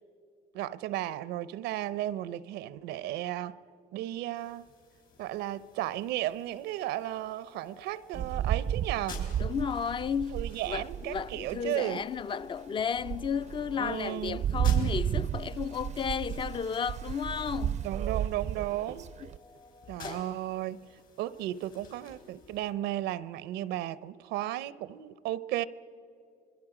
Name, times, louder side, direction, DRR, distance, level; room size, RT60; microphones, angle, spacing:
voice 1, 0.5-3.6 3.9-4.6 5.2-9.3 10.3-12.1 13.8-14.4 17.8-19.1 19.9-20.8 21.2-25.6, right 14 dB, 90° right, 0.6 m, -34 dB
sound 1, 4.3-22.7, left 5 dB, 55° left, 5.4 m, -54 dB
sound 2, 6.3-22.7, left 2 dB, 85° left, 3.6 m, -60 dB
Rain, 8.1-11.7 12.2-12.3 12.8-19.4, right 9 dB, 45° right, 0.4 m, -33 dB
voice 2, 9.4-17.9 20.0-20.3, left 7 dB, 30° left, 0.4 m, -33 dB
26.5 x 22.5 x 4.9 m
cardioid pair, 110°, 17 cm